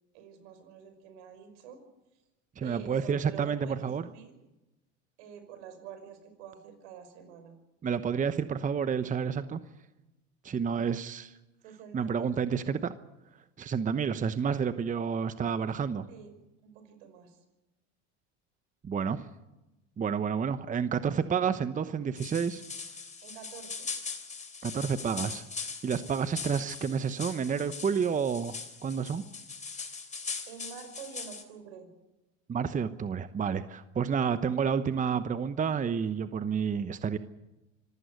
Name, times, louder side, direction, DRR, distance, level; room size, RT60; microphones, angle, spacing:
voice 1, 0.1-1.8 2.6-4.3 5.2-7.5 11.6-12.3 16.1-16.3 16.6-17.4 23.2-23.9 30.5-31.9, right 8 dB, 75° right, 8 dB, 5.6 m, -47 dB
voice 2, 2.6-4.1 7.8-9.6 10.4-11.3 11.9-12.9 13.6-16.1 18.8-19.3 20.0-22.6 24.6-25.4 25.8-28.6 28.8-29.2 32.5-37.2, right 6 dB, 20° right, 12 dB, 1.0 m, -30 dB
sound 1, 22.2-31.4, left 5 dB, 20° left, 3.4 m, -41 dB
26.0 x 15.0 x 8.2 m, 1.0 s
supercardioid pair, 100°, 35 cm